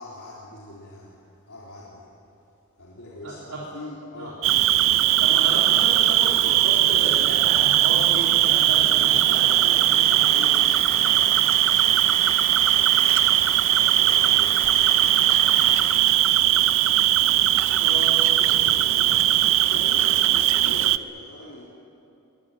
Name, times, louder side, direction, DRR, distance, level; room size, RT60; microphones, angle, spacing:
voice 1, 0.0-2.1 2.8-4.4 5.0-5.2 9.0-9.8 10.0-17.9 18.4-21.6, left 1 dB, 80° left, -5 dB, 3.6 m, -43 dB
voice 2, 3.2-3.6 4.2-4.3 5.2-10.0 17.8-18.2 20.3-20.4, right 1 dB, 85° right, -5 dB, 3.9 m, -33 dB
Cricket, 4.4-21.0, right 13 dB, 65° right, 0.6 m, -19 dB
Applause, 8.5-15.9, left 2 dB, 20° left, 3.0 m, -38 dB
22.5 x 20.5 x 9.1 m, 2.8 s
head